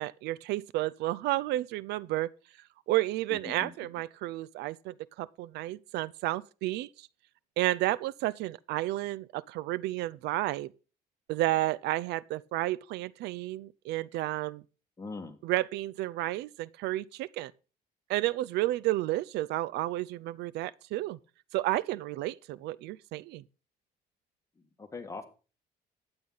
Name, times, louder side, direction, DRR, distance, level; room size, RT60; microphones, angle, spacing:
voice 1, 0.0-2.3 2.9-7.1 7.6-10.7 11.3-14.6 15.4-17.5 18.1-21.2 21.5-23.4, right 16 dB, 80° right, 0.4 m, -31 dB
voice 2, 3.3-3.7 15.0-15.4 24.8-25.2, left 3 dB, 20° left, 1.7 m, -41 dB
12.0 x 8.8 x 4.0 m
cardioid pair, 110°, 17 cm